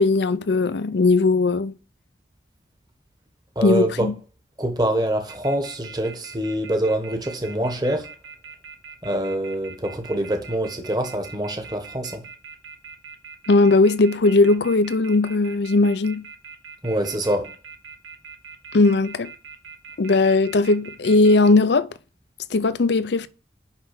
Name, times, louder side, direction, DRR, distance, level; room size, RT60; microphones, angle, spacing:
voice 1, 0.0-1.7 3.6-4.1 13.5-16.2 18.7-19.3 20.0-21.9 22.5-23.3, left 3 dB, 70° left, 0.6 m, -18 dB
voice 2, 3.5-4.1 4.6-8.1 9.0-12.2 16.8-17.5, right 1 dB, 20° right, 1.2 m, -25 dB
sound 1, 5.3-21.5, right 5 dB, 85° right, 1.2 m, -42 dB
5.8 x 5.6 x 5.9 m
head